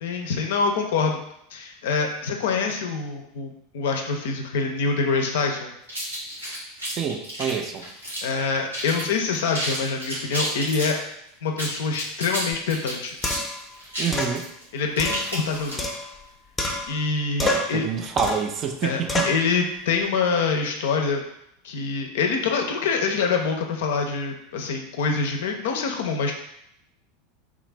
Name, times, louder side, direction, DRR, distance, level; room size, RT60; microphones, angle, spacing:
voice 1, 0.0-1.2 1.5-5.7 8.2-11.0 11.4-13.2 14.7-15.9 16.9-17.9 18.8-21.2 21.6-26.3, left 4 dB, 60° left, 3 dB, 0.5 m, -25 dB
sound 1, 5.9-8.4 8.7-9.1 9.3-11.0 11.5-16.0, equal, 90° right, 1.3 m, -31 dB
voice 2, 6.9-7.8 14.0-14.4 17.4-19.3, right 6 dB, 35° right, 4 dB, 0.4 m, -27 dB
sound 2, 12.5-12.6 13.2-13.6 14.1-14.4 15.0-16.3 16.6-17.1 17.4-17.8 18.2-18.5 19.1-19.4, left 2 dB, 20° left, 0.6 m, -28 dB
3.1 x 2.4 x 3.2 m, 0.76 s
figure-of-eight pair, 80°, 0 cm